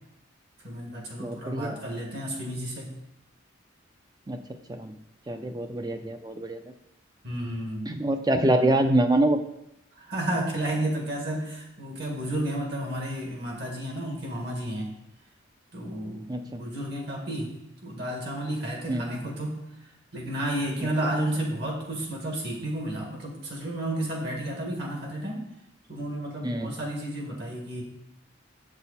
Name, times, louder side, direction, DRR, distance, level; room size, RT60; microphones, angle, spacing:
voice 1, 0.6-2.9 7.2-7.9 10.0-14.9 15.7-17.5 17.8-19.5 20.1-25.5 25.9-27.8, right 1 dB, 60° right, 0 dB, 2.0 m, -32 dB
voice 2, 1.2-1.8 4.3-4.4 4.7-4.9 5.3-6.6 7.9-9.4 16.3-16.6 18.9-19.1 26.4-26.7, right 1 dB, 20° right, 7 dB, 0.6 m, -25 dB
7.9 x 6.2 x 4.2 m, 0.83 s
head